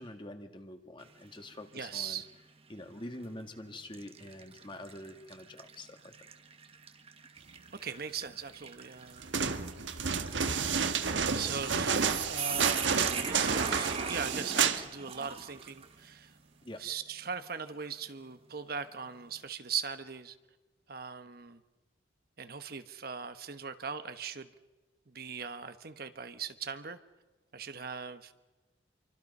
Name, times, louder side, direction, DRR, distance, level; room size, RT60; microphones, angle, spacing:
voice 1, 0.0-2.2 2.7-6.1 16.6-16.8, left 1 dB, 25° left, 6 dB, 1.8 m, -46 dB
sound 1, 1.0-1.5 2.0-2.1 3.1-3.3 3.9-16.0, right 6 dB, 30° right, 1.2 m, -41 dB
voice 2, 1.7-2.3 7.7-9.3 11.3-16.3 16.8-20.3 20.9-21.6 22.4-24.5 25.1-27.0 27.5-28.3, right 6 dB, 55° right, 10 dB, 1.1 m, -40 dB
sound 2, 9.2-14.8 15.1-15.2, right 6 dB, 90° right, 1.4 m, -30 dB
28.0 x 24.5 x 5.5 m, 1.2 s
head